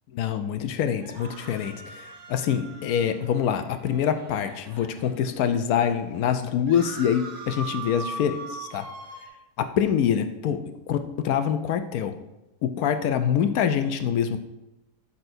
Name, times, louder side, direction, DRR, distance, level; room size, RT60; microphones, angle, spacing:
voice 1, 0.1-8.9 9.6-12.1 12.6-14.4, left 8 dB, 70° left, 9 dB, 1.0 m, -25 dB
sound 1, 1.0-5.4 5.9-6.0 6.2-9.3, right 3 dB, 45° right, 0.8 m, -41 dB
12.0 x 5.7 x 2.6 m, 0.92 s
omnidirectional pair, 1.8 m